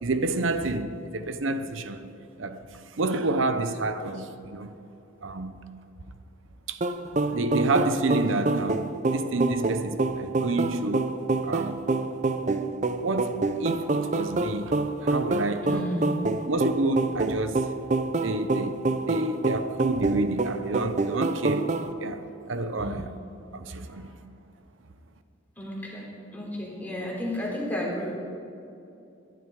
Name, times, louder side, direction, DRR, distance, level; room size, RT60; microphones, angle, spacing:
voice 1, 0.0-2.1 2.4-2.6 3.0-4.7 5.2-5.6 6.7-6.8 7.1-11.8 12.4-12.6 12.9-14.8 15.0-15.8 16.3-17.7 18.2-21.7 22.0-23.1 23.5-24.1, right 2 dB, 85° right, 0.8 m, -29 dB
sound 1, 6.8-21.9, right 3 dB, 40° right, 0.7 m, -27 dB
voice 2, 15.6-16.2 22.7-23.1 25.6-26.1 26.3-28.1, left 1 dB, 10° left, 3.7 m, -32 dB
22.0 x 12.0 x 4.8 m
head